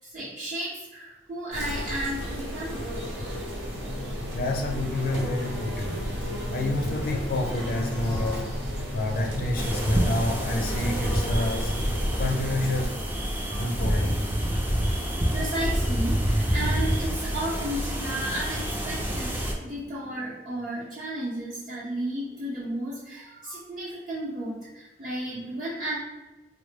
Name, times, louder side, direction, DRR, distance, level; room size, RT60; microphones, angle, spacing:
voice 1, 0.0-2.9 13.4-13.6 15.3-26.0, right 1 dB, 50° right, -9 dB, 0.8 m, -33 dB
sound 1, 1.5-12.9, equal, 85° right, 1.1 m, -32 dB
voice 2, 4.3-6.0 6.5-8.4 8.9-11.7 12.2-12.9 13.6-14.3, left 2 dB, 55° left, 2 dB, 0.4 m, -28 dB
sound 2, 9.6-19.5, equal, 10° right, 0.4 m, -27 dB
3.9 x 2.0 x 3.2 m, 1.1 s
head